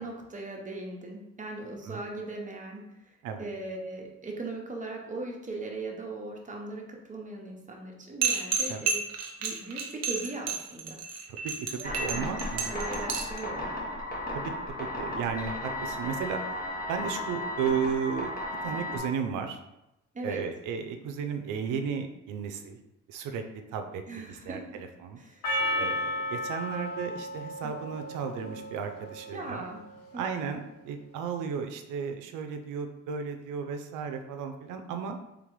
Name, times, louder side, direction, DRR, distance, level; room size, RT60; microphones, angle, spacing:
voice 1, 0.0-9.0 9.4-11.3 11.8-12.3 12.7-13.7 18.7-19.0 20.1-20.5 24.1-24.8 25.2-25.5 27.6-27.8 29.3-29.8 30.1-30.2, right 2 dB, 25° right, 0 dB, 0.9 m, -39 dB
sound 1, 8.2-13.4, right 5 dB, 60° right, 0.8 m, -30 dB
voice 2, 11.7-12.7 14.3-14.5 14.8-16.4 16.9-18.3 18.6-19.6 20.2-22.8 23.1-25.2 25.7-29.6 30.2-35.2, right 6 dB, 85° right, 5 dB, 0.5 m, -34 dB
sound 2, 11.8-19.0, left 1 dB, 30° left, 1.2 m, -35 dB
Percussion, 25.4-29.9, left 1 dB, 85° left, 0.9 m, -34 dB
3.7 x 3.4 x 3.1 m, 0.89 s
cardioid pair, 90°, 30 cm